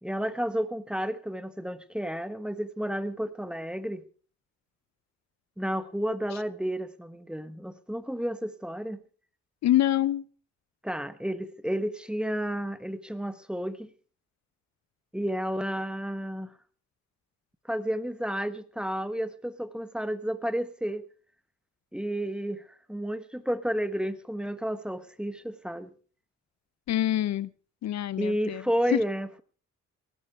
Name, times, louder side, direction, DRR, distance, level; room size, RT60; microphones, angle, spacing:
voice 1, 0.0-4.0 5.6-9.0 10.8-13.9 15.1-16.5 17.7-21.0 21.9-22.6 22.9-25.9 28.2-29.4, equal, 5° right, 1.3 m, -31 dB
voice 2, 9.6-10.2 26.9-27.5 27.8-28.6 28.9-29.0, left 13 dB, 65° left, 0.6 m, -25 dB
18.5 x 12.5 x 4.9 m
cardioid pair, 90°, 30 cm